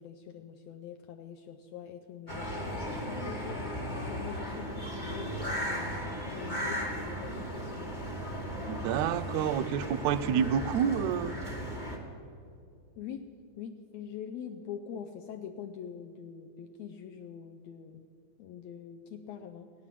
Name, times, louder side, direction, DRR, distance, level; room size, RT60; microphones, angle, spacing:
voice 1, 0.0-7.9 13.0-18.0 18.4-19.7, left 8 dB, 85° left, 5 dB, 1.5 m, -44 dB
sound 1, 2.3-12.0, equal, 40° left, 0.6 m, -36 dB
voice 2, 8.7-11.3, right 8 dB, 80° right, 10 dB, 1.7 m, -28 dB
17.5 x 9.2 x 7.4 m, 2.4 s
omnidirectional pair, 3.6 m